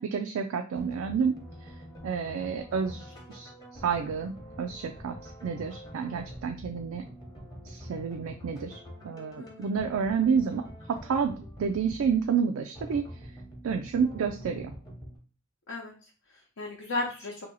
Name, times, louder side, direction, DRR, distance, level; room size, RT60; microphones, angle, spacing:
voice 1, 0.0-1.4 2.0-7.0 7.7-10.6 10.9-13.0 13.6-14.7, right 6 dB, 80° right, 5 dB, 0.3 m, -30 dB
sound 1, 0.7-15.2, equal, 20° left, 0.7 m, -45 dB
voice 2, 9.4-9.7 15.7-17.5, left 2 dB, 70° left, -1 dB, 0.7 m, -36 dB
2.8 x 2.7 x 4.0 m, 0.36 s
head